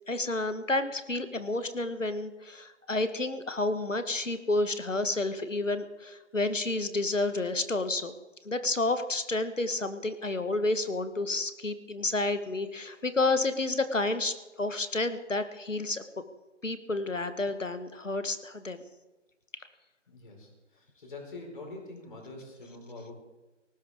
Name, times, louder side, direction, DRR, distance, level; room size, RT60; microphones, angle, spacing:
voice 1, 0.1-8.2 8.4-16.0 16.6-18.8, left 2 dB, 85° left, 11 dB, 1.5 m, -30 dB
voice 2, 20.1-23.1, left 2 dB, 40° left, 0 dB, 4.6 m, -45 dB
18.5 x 17.0 x 3.6 m, 1.1 s
figure-of-eight pair, 155°, 37 cm